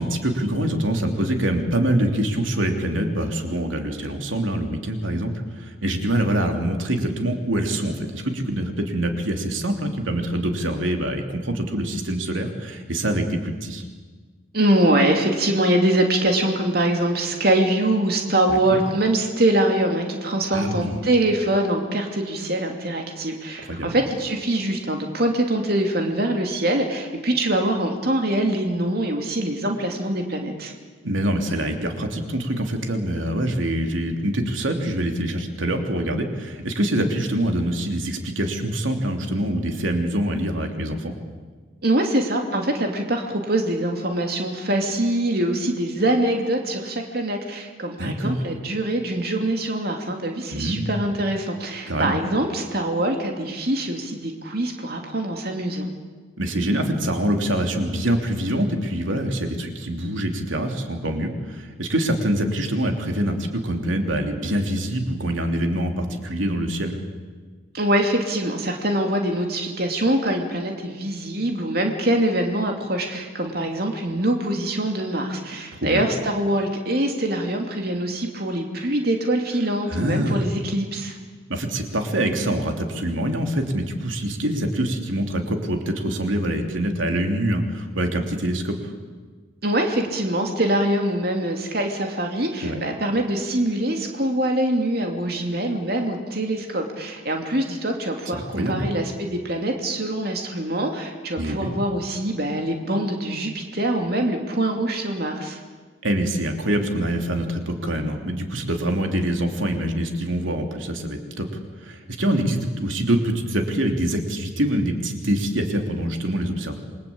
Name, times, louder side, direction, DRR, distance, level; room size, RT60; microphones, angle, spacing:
voice 1, 0.0-13.8 18.5-18.8 20.5-21.0 23.6-24.0 31.0-41.1 48.0-48.4 50.5-50.9 51.9-52.1 56.4-67.0 75.8-76.0 79.9-80.5 81.5-88.9 92.6-92.8 98.3-98.9 101.4-101.7 106.0-111.5 111.8-116.8, right 1 dB, 85° right, 4 dB, 3.2 m, -25 dB
voice 2, 14.5-30.7 41.8-55.9 67.7-81.1 89.6-105.6, right 1 dB, 50° right, 3 dB, 2.8 m, -24 dB
28.0 x 23.5 x 8.7 m, 1.4 s
head